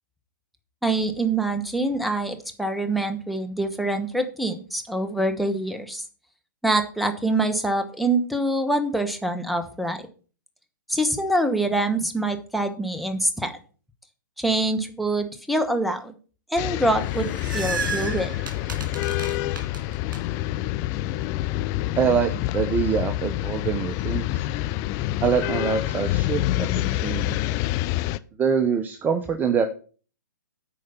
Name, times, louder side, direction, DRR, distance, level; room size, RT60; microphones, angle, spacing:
voice 1, 0.8-6.0 6.6-10.0 10.9-13.5 14.4-16.2 16.5-18.3, right 2 dB, ahead, 7 dB, 1.1 m, -25 dB
sound 1, 16.6-28.2, left 15 dB, 30° left, 0.4 m, -27 dB
sound 2, 16.9-20.2, right 5 dB, 75° right, 2.5 m, -33 dB
voice 2, 22.0-24.5 25.2-27.6 28.4-29.6, right 6 dB, 15° right, 8 dB, 0.7 m, -25 dB
8.6 x 5.0 x 6.8 m, 0.39 s
hypercardioid pair, 125°, 11 cm